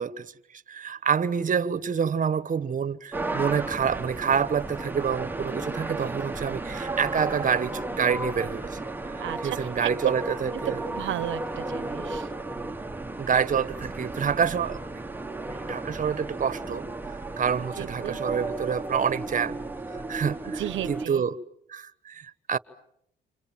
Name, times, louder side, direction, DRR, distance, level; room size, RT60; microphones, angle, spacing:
voice 1, 0.0-10.8 13.2-14.8 15.7-16.9 17.4-19.6 20.1-21.4 21.7-22.6, right 7 dB, 40° right, 1.3 m, -27 dB
sound 1, 3.1-21.1, right 2 dB, 10° right, 1.3 m, -34 dB
voice 2, 9.2-9.9 10.8-12.3 17.8-18.2 20.6-21.2, right 13 dB, 75° right, 1.0 m, -34 dB
29.0 x 27.5 x 7.4 m
cardioid pair, 90°, 20 cm